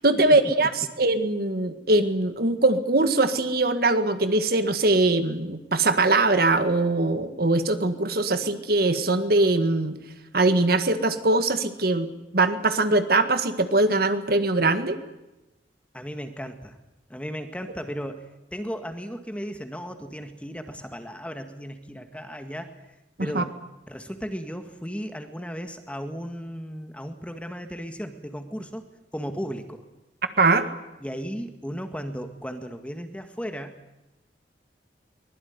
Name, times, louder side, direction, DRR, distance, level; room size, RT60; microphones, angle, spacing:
voice 1, 0.0-9.9 10.3-15.0 23.2-23.4 30.4-30.7, right 2 dB, 55° right, 10 dB, 1.8 m, -22 dB
voice 2, 15.9-16.7 17.1-22.7 23.2-23.6 23.9-28.8 29.1-29.8 31.0-33.8, equal, 5° left, 7 dB, 1.8 m, -35 dB
23.5 x 21.0 x 9.6 m, 0.97 s
head